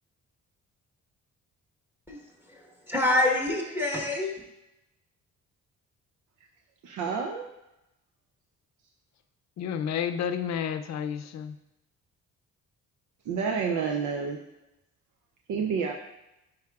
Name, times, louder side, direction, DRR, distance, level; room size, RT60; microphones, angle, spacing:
voice 1, 2.1-4.4, left 2 dB, 5° right, 0 dB, 1.3 m, -27 dB
voice 2, 6.8-7.5 13.3-14.4 15.5-15.9, right 6 dB, 80° right, 2 dB, 0.6 m, -29 dB
voice 3, 9.6-11.6, left 8 dB, 65° left, 9 dB, 0.5 m, -31 dB
9.4 x 4.8 x 2.4 m, 0.91 s
cardioid pair, 90°, 30 cm